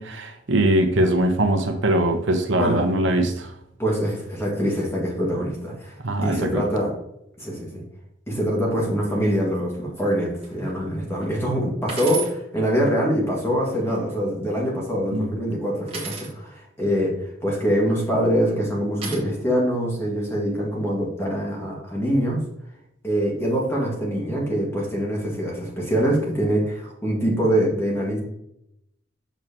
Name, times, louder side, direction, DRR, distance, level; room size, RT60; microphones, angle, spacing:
voice 1, 0.0-3.5 6.0-6.6 15.1-15.3, right 1 dB, 75° right, 4 dB, 0.9 m, -21 dB
voice 2, 3.8-5.9 6.2-6.9 7.4-7.8 8.3-22.4 23.0-28.2, equal, 15° left, -3 dB, 1.9 m, -24 dB
sound 1, 10.4-10.7 11.2-11.3 11.9-12.3 13.5-14.1 15.9-16.3 17.8-18.3 19.0-19.2, right 4 dB, 30° right, 1.7 m, -34 dB
7.2 x 6.1 x 2.9 m, 0.79 s
head